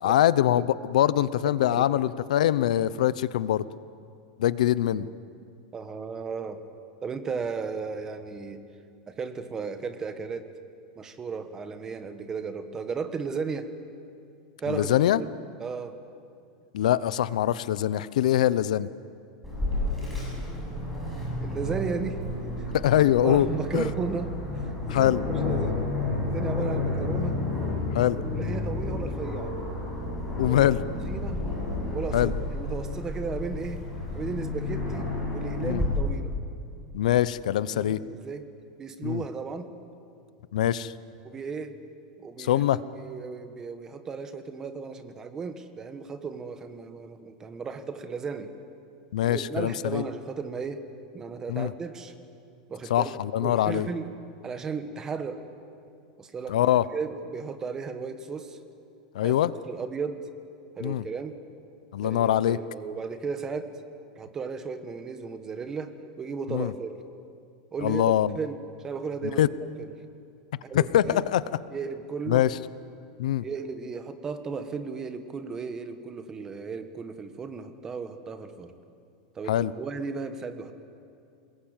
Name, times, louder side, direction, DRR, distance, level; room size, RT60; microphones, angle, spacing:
voice 1, 0.0-3.6 4.4-5.1 14.7-15.2 16.7-18.9 22.7-23.5 23.7-23.9 24.9-25.2 27.9-28.2 30.4-30.8 32.1-32.3 35.6-35.8 36.9-38.0 39.0-39.2 40.5-40.9 42.4-42.8 49.1-50.0 51.5-51.7 52.9-53.9 56.5-56.8 59.1-59.5 60.8-61.0 61.9-62.6 66.5-66.7 67.8-68.3 69.4-69.5 70.7-71.4 72.3-72.6 73.2-73.4 79.5-79.7, left 12 dB, 80° left, 17 dB, 0.8 m, -23 dB
voice 2, 1.6-2.0 5.7-6.6 7.0-8.6 9.1-10.5 11.0-13.7 14.6-15.3 15.6-16.0 21.4-22.2 22.6-22.7 23.2-25.9 26.2-27.4 28.3-29.6 30.5-30.7 31.1-31.5 31.9-36.3 37.7-39.7 41.2-41.8 42.2-42.6 42.9-48.5 49.2-50.9 51.1-52.1 52.7-53.1 53.4-54.2 54.4-55.5 56.2-58.6 59.2-59.3 59.7-60.3 60.8-61.4 62.0-63.8 64.2-67.0 67.7-68.0 68.3-69.5 69.8-69.9 70.6-71.2 71.7-72.5 73.4-78.7 79.3-80.7, right 5 dB, 15° right, 9 dB, 1.3 m, -35 dB
Aircraft, 19.4-35.8, left 2 dB, ahead, 7.7 m, -31 dB
25.5 x 21.5 x 9.0 m, 2.4 s
supercardioid pair, 175°, 4 cm